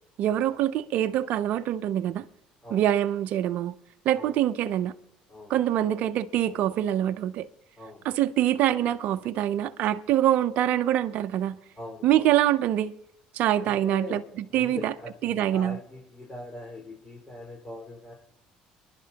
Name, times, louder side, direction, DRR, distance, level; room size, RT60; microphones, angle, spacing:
voice 1, 0.2-2.2 2.7-3.7 4.1-4.9 5.5-7.5 8.0-11.6 12.0-12.9 13.3-14.2 14.5-14.9 15.2-15.8, right 12 dB, 65° right, 0.6 m, -24 dB
voice 2, 7.8-8.1 11.7-12.3 13.6-14.2 14.5-18.1, left 1 dB, 25° left, 4.9 m, -41 dB
26.0 x 11.0 x 2.9 m
supercardioid pair, 95°, 3 cm